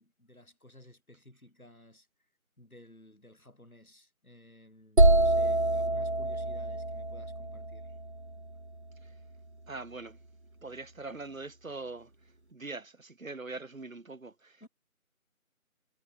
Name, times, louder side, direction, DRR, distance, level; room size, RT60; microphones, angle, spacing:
voice 1, 0.0-2.1 2.6-7.9 14.6-14.7, left 1 dB, 80° left, 6.3 m, -55 dB
sound 1, 5.0-8.8, right 2 dB, 50° right, 0.5 m, -26 dB
voice 2, 9.7-10.2 10.6-12.1 12.5-14.6, right 3 dB, 65° right, 1.2 m, -42 dB
figure-of-eight pair, 175°, 43 cm